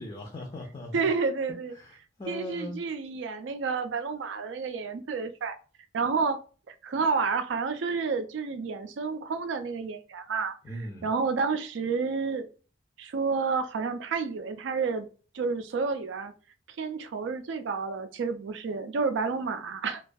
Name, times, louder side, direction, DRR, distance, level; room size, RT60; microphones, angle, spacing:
voice 1, 0.0-1.1 1.8-2.8 10.6-11.1, left 1 dB, 25° left, 0.4 m, -39 dB
voice 2, 0.9-1.7 2.3-5.6 5.9-6.4 6.7-10.6 11.0-12.5 13.0-15.1 15.3-16.3 16.8-20.0, right 4 dB, 75° right, 0.3 m, -30 dB
2.3 x 2.2 x 2.5 m
head